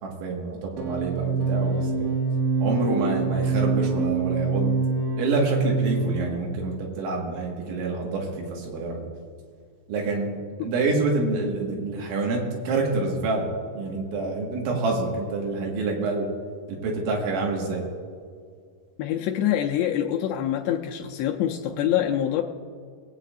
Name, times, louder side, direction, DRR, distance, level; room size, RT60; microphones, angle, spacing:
voice 1, 0.0-2.1 2.6-4.8 5.2-9.0 9.9-10.4 10.6-16.3 16.7-17.8, right 3 dB, 85° right, -1 dB, 4.1 m, -27 dB
sound 1, 0.8-6.4, right 4 dB, 70° right, 3.3 m, -25 dB
voice 2, 19.0-22.4, left 11 dB, 80° left, 0 dB, 2.7 m, -25 dB
23.0 x 8.2 x 2.5 m, 2.1 s
omnidirectional pair, 5.2 m